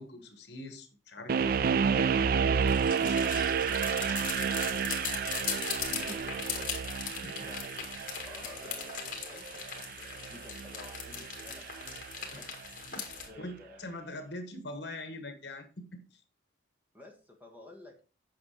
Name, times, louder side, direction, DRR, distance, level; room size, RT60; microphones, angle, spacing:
voice 1, 0.0-3.2 5.9-6.2 7.1-7.4 12.3-12.5 13.4-16.2, left 1 dB, 60° left, 7 dB, 1.5 m, -43 dB
sound 1, 1.3-12.3, right 6 dB, 50° right, 0.3 m, -31 dB
sound 2, 2.6-13.3, left 7 dB, 45° left, 2.1 m, -39 dB
voice 2, 5.9-6.5 7.4-7.8 8.1-11.9 12.4-12.7 13.3-14.0 16.9-18.0, left 2 dB, 10° right, 2 dB, 1.7 m, -53 dB
8.5 x 6.0 x 4.9 m, 0.36 s
head